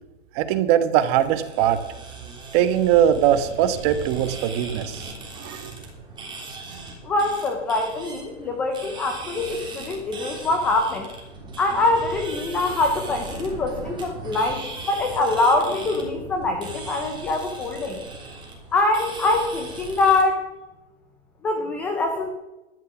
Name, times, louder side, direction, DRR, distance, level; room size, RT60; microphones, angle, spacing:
voice 1, 0.3-1.8 2.5-5.7, right 10 dB, 30° right, 10 dB, 1.2 m, -21 dB
sound 1, 0.9-20.2, right 3 dB, 15° right, 3.3 m, -38 dB
voice 2, 7.0-11.1 11.6-18.0 18.7-20.4 21.4-22.3, left 2 dB, 5° left, 4 dB, 0.3 m, -24 dB
12.0 x 10.5 x 6.0 m, 1.0 s
hypercardioid pair, 150°, 36 cm